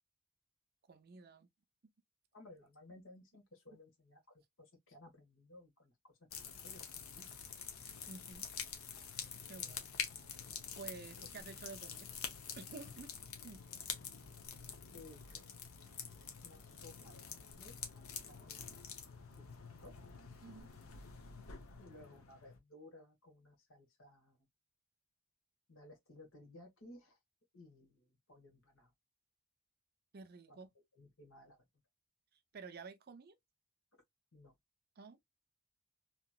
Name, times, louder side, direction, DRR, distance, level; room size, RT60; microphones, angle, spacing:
voice 1, 0.9-1.5 3.7-3.8 8.1-8.5 9.5-9.9 10.8-12.1 12.6-13.1 13.4-13.6 20.4-20.7 30.1-30.7 32.5-33.4 35.0-35.2, right 4 dB, 50° right, 0.5 m, -51 dB
voice 2, 2.3-7.3 11.2-11.3 14.1-14.3 14.9-15.5 16.4-19.9 21.8-24.5 25.7-27.2 27.5-28.9 30.5-30.6 30.9-31.7 34.3-34.5, left 1 dB, 70° left, 1.5 m, -59 dB
sound 1, 6.3-22.6, left 7 dB, 90° left, 0.8 m, -47 dB
2.9 x 2.9 x 2.3 m
head